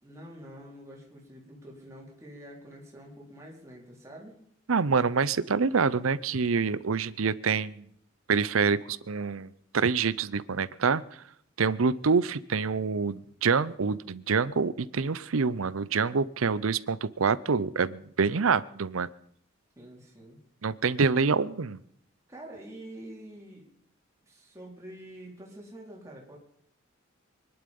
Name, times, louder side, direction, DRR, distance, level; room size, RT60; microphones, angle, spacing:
voice 1, 0.0-4.4 19.8-20.4 22.3-23.7 24.3-26.4, right 1 dB, 15° right, -2 dB, 4.0 m, -46 dB
voice 2, 4.7-7.9 8.3-11.2 11.6-19.1 20.6-21.8, right 5 dB, 85° right, 19 dB, 0.7 m, -26 dB
24.5 x 11.0 x 5.4 m, 0.68 s
head